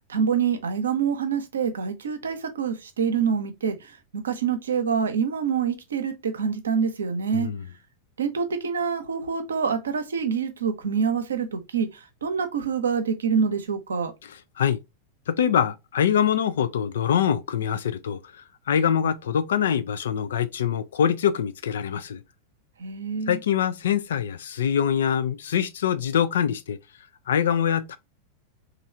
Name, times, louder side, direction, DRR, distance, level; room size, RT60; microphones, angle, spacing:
voice 1, 0.1-3.7 4.2-7.5 8.2-11.9 12.2-14.1 22.8-23.4, right 6 dB, 70° right, 0.7 m, -26 dB
voice 2, 7.3-7.7 14.2-14.8 15.3-18.2 18.7-22.2 23.3-26.8 27.3-28.0, left 8 dB, 60° left, 0.4 m, -24 dB
3.1 x 2.6 x 4.1 m
figure-of-eight pair, 90°, 0 cm